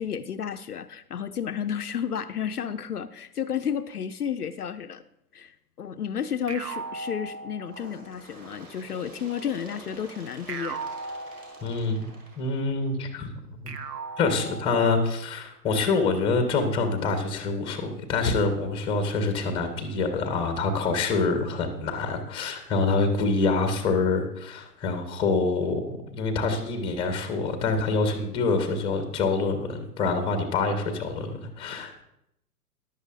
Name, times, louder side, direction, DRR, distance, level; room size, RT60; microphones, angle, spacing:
voice 1, 0.0-5.0 5.3-10.9, left 8 dB, 70° left, 9 dB, 0.6 m, -32 dB
sound 1, 6.5-8.1 10.5-12.1 13.7-15.2, right 4 dB, 80° right, 0.9 m, -37 dB
Bird, 7.7-13.1 14.0-14.1 14.5-14.6 15.5-15.6 16.5-16.6 17.4-17.5, right 1 dB, 20° right, 4.2 m, -48 dB
voice 2, 11.6-12.1 12.4-13.3 13.6-13.7 14.2-25.8 26.1-32.0, left 3 dB, 10° left, 7 dB, 1.0 m, -26 dB
15.0 x 11.0 x 2.5 m, 0.82 s
figure-of-eight pair, 120°, 48 cm